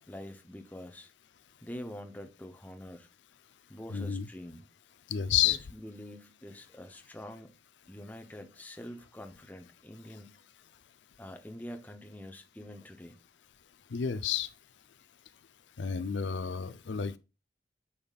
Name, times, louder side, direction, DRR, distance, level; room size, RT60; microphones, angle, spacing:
voice 1, 0.1-1.1 1.6-3.1 3.7-4.7 5.4-7.6 7.9-10.4 11.2-13.2, left 1 dB, 10° left, 0.7 m, -45 dB
voice 2, 3.9-4.2 5.1-5.6 13.9-14.5 15.8-17.2, left 8 dB, 80° left, 0.5 m, -30 dB
8.6 x 5.7 x 2.4 m
head